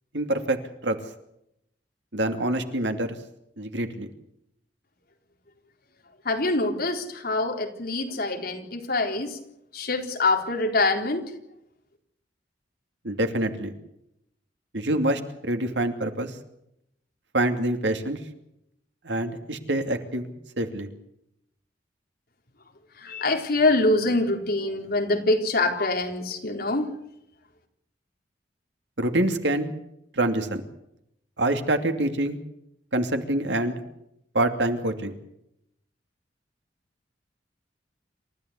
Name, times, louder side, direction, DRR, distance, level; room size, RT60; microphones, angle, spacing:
voice 1, 0.1-0.6 0.8-1.0 2.1-3.2 3.6-4.1 13.0-13.7 14.7-16.3 17.3-18.2 19.0-20.9 29.0-29.7 30.1-30.6 31.4-32.4 32.9-33.8 34.3-35.1, right 1 dB, 80° right, 6 dB, 2.7 m, -26 dB
voice 2, 6.2-9.4 9.7-11.2 23.0-26.9, left 2 dB, 60° left, 3 dB, 4.1 m, -25 dB
28.0 x 14.5 x 8.3 m, 0.79 s
head